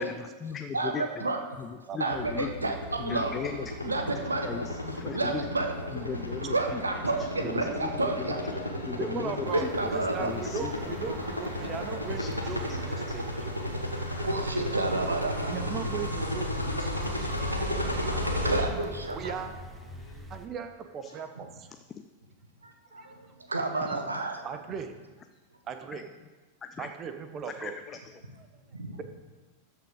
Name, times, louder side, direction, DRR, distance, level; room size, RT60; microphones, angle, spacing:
voice 1, 0.0-1.3 1.6-2.7 3.0-4.2 4.4-5.4 5.9-6.8 7.2-8.6 8.8-9.7 10.2-10.9 12.2-12.3 12.7-12.8 13.1-13.2 21.0-21.1 21.9-22.0 25.9-26.0 26.6-26.9 27.5-28.2, left 6 dB, 20° left, 8 dB, 0.5 m, -38 dB
voice 2, 0.7-1.4 2.0-2.8 3.0-3.4 3.8-4.6 5.1-5.7 6.4-8.4 9.5-10.4 14.2-15.8 17.8-17.9 18.1-19.4 23.0-24.5 28.7-29.0, right 2 dB, 80° right, 5 dB, 1.2 m, -30 dB
sound 1, 2.1-18.6, left 1 dB, 90° left, 1.2 m, -33 dB
sound 2, 6.9-20.2, left 4 dB, 60° left, 1.7 m, -49 dB
voice 3, 9.0-9.6 9.9-13.5 15.5-17.7 19.1-19.5 20.3-21.7 23.0-23.1 23.9-24.0 24.4-24.9 25.7-26.0 26.8-27.7, right 7 dB, 30° right, 8 dB, 0.8 m, -38 dB
sound 3, 9.4-20.5, left 1 dB, 5° right, 1.3 m, -45 dB
13.5 x 5.6 x 5.1 m, 1.3 s
figure-of-eight pair, 90°, 0 cm